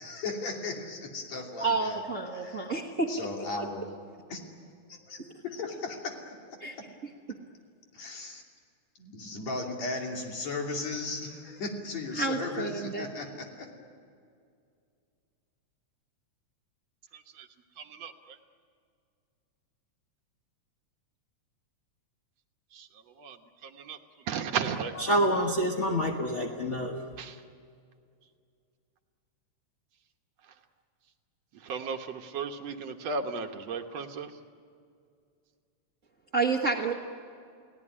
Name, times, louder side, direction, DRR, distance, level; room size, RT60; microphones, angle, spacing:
voice 1, 0.0-2.0 2.3-2.7 3.1-3.9 4.3-4.4 4.9-5.2 5.4-6.9 7.3-7.4 7.9-8.4 9.0-13.7, left 3 dB, 65° left, 1 dB, 4.1 m, -36 dB
voice 2, 1.6-3.4 5.2-5.3 6.6-6.7 12.1-13.0 36.3-36.9, right 3 dB, 35° right, 1 dB, 1.4 m, -30 dB
voice 3, 17.8-18.1 22.7-22.9 23.2-23.4 23.6-24.0 24.3-24.9 27.2-27.4 31.6-34.3, right 5 dB, 65° right, 5 dB, 2.2 m, -34 dB
voice 4, 24.9-27.1, equal, 45° left, 2 dB, 0.9 m, -27 dB
30.0 x 17.5 x 9.9 m, 2.3 s
omnidirectional pair, 3.3 m